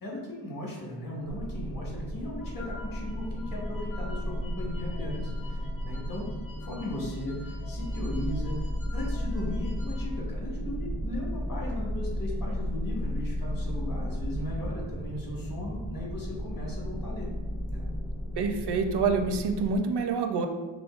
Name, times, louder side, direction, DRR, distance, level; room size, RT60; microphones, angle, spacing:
voice 1, 0.0-6.3 6.6-8.6 8.9-17.3 17.7-17.9, left 1 dB, 45° left, -3 dB, 1.2 m, -37 dB
sound 1, 1.2-19.8, equal, ahead, 0.5 m, -34 dB
sound 2, 2.4-10.0, left 2 dB, 70° left, 1.1 m, -49 dB
voice 2, 18.4-20.5, right 4 dB, 60° right, 6 dB, 0.5 m, -27 dB
5.1 x 3.2 x 2.4 m, 1.3 s
wide cardioid pair, 125°, 47 cm